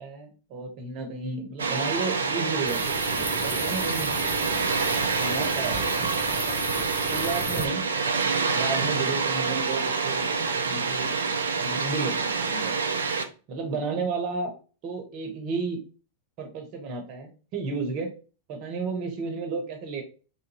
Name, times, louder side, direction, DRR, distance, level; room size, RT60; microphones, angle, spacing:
voice 1, 0.0-3.0 3.4-4.7 5.2-5.8 7.1-8.2 8.5-11.1 11.6-12.7 13.5-14.5 14.8-15.8 16.4-18.1 18.5-20.0, right 4 dB, 45° right, 4 dB, 1.0 m, -33 dB
Water, 1.6-13.2, right 4 dB, 75° right, 0.4 m, -27 dB
sound 1, 2.7-7.7, left 1 dB, 15° left, 1.0 m, -36 dB
3.1 x 2.6 x 3.0 m, 0.36 s
figure-of-eight pair, 95°, 0 cm